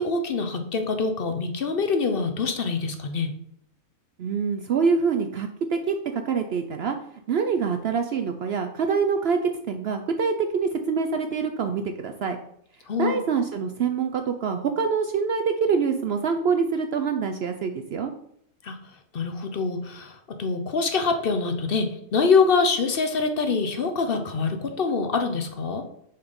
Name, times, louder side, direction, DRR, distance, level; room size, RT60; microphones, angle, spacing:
voice 1, 0.0-3.3 12.9-13.2 18.6-18.8 19.1-25.8, left 4 dB, 50° left, 6 dB, 0.9 m, -25 dB
voice 2, 4.2-7.0 7.3-12.4 13.0-18.1, right 5 dB, 60° right, 6 dB, 0.7 m, -25 dB
6.6 x 4.2 x 5.3 m, 0.72 s
omnidirectional pair, 1.4 m